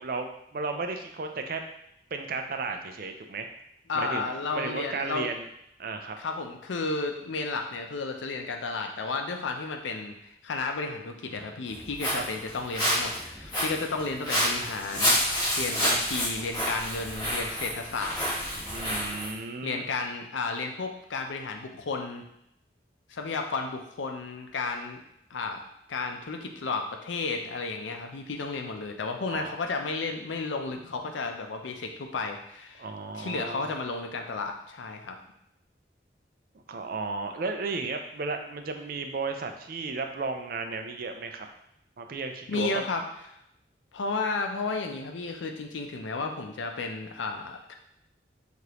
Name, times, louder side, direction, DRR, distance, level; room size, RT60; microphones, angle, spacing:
voice 1, 0.0-1.6 2.1-3.5 3.9-5.5 5.8-6.2 12.1-12.2 18.7-19.8 29.3-29.6 32.8-33.7 36.7-41.5 42.0-42.8, right 3 dB, 50° right, 5 dB, 0.4 m, -34 dB
voice 2, 3.9-5.3 6.2-10.1 10.4-18.2 19.6-22.2 23.1-25.0 25.3-25.6 25.9-32.9 33.1-35.2 42.5-43.0 43.9-47.7, left 3 dB, 90° left, 4 dB, 0.5 m, -33 dB
Walk footsteps, 11.7-19.3, equal, 20° left, 1.4 m, -29 dB
4.8 x 2.5 x 2.9 m, 0.78 s
head